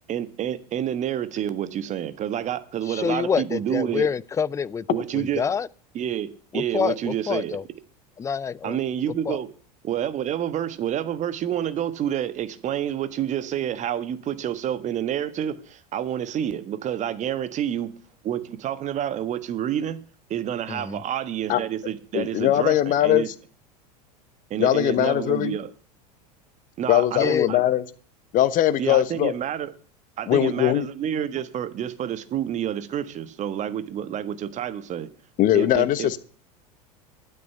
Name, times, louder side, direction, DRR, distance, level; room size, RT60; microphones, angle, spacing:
voice 1, 0.1-4.1 4.9-5.4 5.9-7.6 8.6-9.5 9.8-17.9 18.2-20.0 20.3-23.3 24.5-25.7 26.8-27.6 28.8-29.7 30.2-35.1 35.5-36.2, right 10 dB, 35° right, 1.5 m, -28 dB
voice 2, 2.9-4.8 5.1-5.7 6.5-7.6 8.2-8.8 9.3-9.4 20.7-21.0 27.2-27.5, left 6 dB, 15° left, 0.5 m, -26 dB
voice 3, 22.1-23.2 24.6-25.6 26.9-27.8 28.3-29.3 30.3-30.9 35.4-36.2, left 13 dB, 40° left, 1.2 m, -20 dB
12.0 x 9.4 x 5.7 m
figure-of-eight pair, 80°, 20 cm